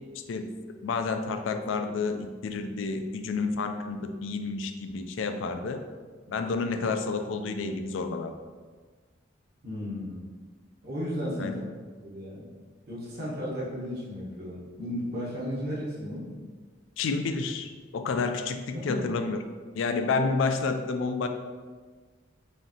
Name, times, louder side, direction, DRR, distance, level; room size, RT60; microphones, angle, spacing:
voice 1, 0.8-5.8 6.3-8.3 11.4-11.6 17.0-19.4 19.7-21.3, left 4 dB, 85° left, 7 dB, 0.4 m, -30 dB
voice 2, 9.6-10.2 10.8-11.6 12.0-12.5 12.9-16.2 18.7-19.1, equal, 55° right, -7 dB, 1.2 m, -34 dB
5.0 x 2.7 x 2.8 m, 1.5 s
head